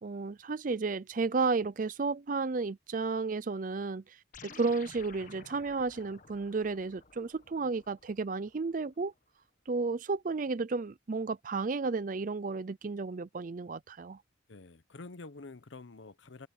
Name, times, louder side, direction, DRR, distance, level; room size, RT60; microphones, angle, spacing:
voice 1, 0.0-9.1 9.7-14.2, right 4 dB, 45° right, 0.5 m, -33 dB
sound 1, 4.3-9.0, left 5 dB, 45° left, 1.4 m, -54 dB
voice 2, 14.5-16.5, left 3 dB, 85° left, 0.9 m, -48 dB
head